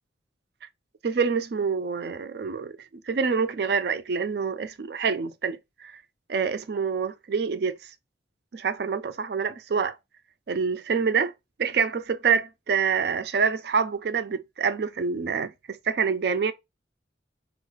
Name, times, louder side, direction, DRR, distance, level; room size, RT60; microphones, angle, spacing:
voice 1, 1.0-2.8 3.1-6.0 6.3-7.8 8.5-9.9 10.5-11.3 11.6-16.5, right 5 dB, 60° right, 0.4 m, -26 dB
3.6 x 2.4 x 2.9 m
head